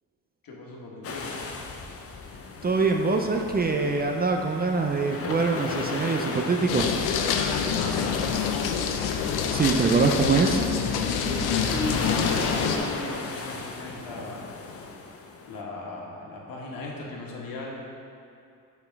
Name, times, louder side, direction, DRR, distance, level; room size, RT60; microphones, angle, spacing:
voice 1, 0.4-1.3 7.8-8.2 11.0-14.5 15.5-17.8, left 2 dB, 65° left, -3 dB, 1.5 m, -37 dB
sound 1, 1.0-15.6, left 4 dB, 40° left, 0.7 m, -36 dB
voice 2, 2.6-7.0 9.5-10.6, right 4 dB, 25° right, 3 dB, 0.5 m, -24 dB
sound 2, 6.7-12.8, left 7 dB, 85° left, 0.7 m, -26 dB
5.9 x 5.6 x 4.6 m, 2.6 s
cardioid pair, 85°, 37 cm